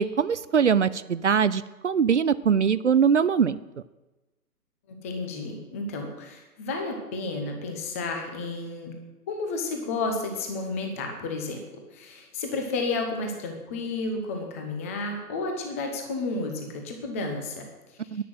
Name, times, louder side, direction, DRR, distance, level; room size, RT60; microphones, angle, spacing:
voice 1, 0.0-3.6 18.1-18.2, right 7 dB, 50° right, 16 dB, 0.5 m, -22 dB
voice 2, 4.9-8.9 9.3-11.6 11.9-18.0, left 3 dB, 10° left, 3 dB, 0.8 m, -32 dB
10.5 x 10.0 x 7.7 m, 1.1 s
hypercardioid pair, 155°, 47 cm